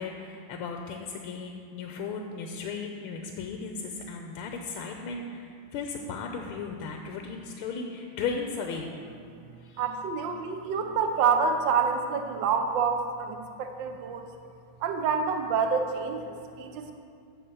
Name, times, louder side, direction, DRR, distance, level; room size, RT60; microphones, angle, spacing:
voice 1, 0.0-8.9 9.6-9.8, left 5 dB, 90° left, 3 dB, 1.6 m, -36 dB
voice 2, 9.8-14.2 14.8-16.9, right 5 dB, 65° right, 6 dB, 1.4 m, -27 dB
8.7 x 7.1 x 6.8 m, 2.4 s
omnidirectional pair, 2.4 m